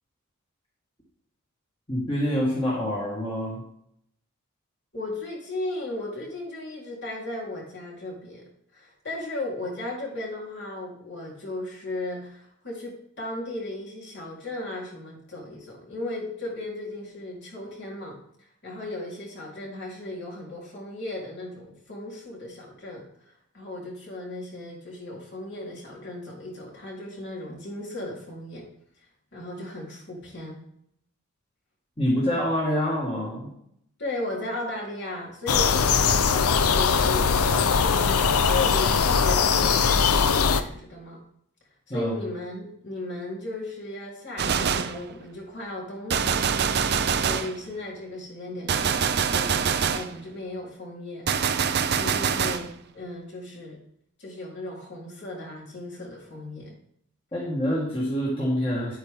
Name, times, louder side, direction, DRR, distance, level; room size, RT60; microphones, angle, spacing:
voice 1, 1.9-3.6 32.0-33.5 41.9-42.1 57.3-59.0, equal, 25° left, -5 dB, 2.1 m, -26 dB
voice 2, 4.9-28.7 29.3-30.6 34.0-41.2 41.9-46.6 46.8-51.6 51.9-53.8 54.2-56.7, left 2 dB, 55° left, -4 dB, 3.7 m, -36 dB
sound 1, 35.5-40.6, left 6 dB, 90° left, 0.6 m, -21 dB
Gunshot gunfire, 44.4-45.0 46.1-47.6 48.7-50.1 51.3-52.7, right 7 dB, 50° right, 0.5 m, -24 dB
10.0 x 8.6 x 3.7 m, 0.71 s
head